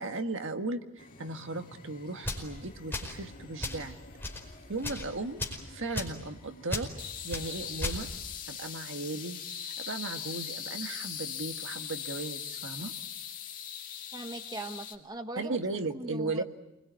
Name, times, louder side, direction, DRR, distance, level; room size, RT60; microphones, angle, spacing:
voice 1, 0.0-4.0 4.7-5.4 5.7-6.9 7.2-8.1 8.5-9.4 9.7-12.9 15.4-16.4, right 3 dB, 65° right, 6 dB, 1.7 m, -36 dB
sound 1, 1.0-15.0, left 8 dB, 40° left, 2.4 m, -42 dB
sound 2, 2.2-2.5 2.9-3.2 3.6-3.8 4.2-4.4 4.8-5.1 5.4-5.6 5.9-6.2 6.7-6.9 7.3-7.5 7.8-8.0, left 2 dB, 10° left, 5.0 m, -34 dB
voice 2, 14.1-15.6 15.9-16.4, right 1 dB, 20° right, 6 dB, 1.2 m, -40 dB
28.5 x 21.5 x 9.3 m, 0.92 s
head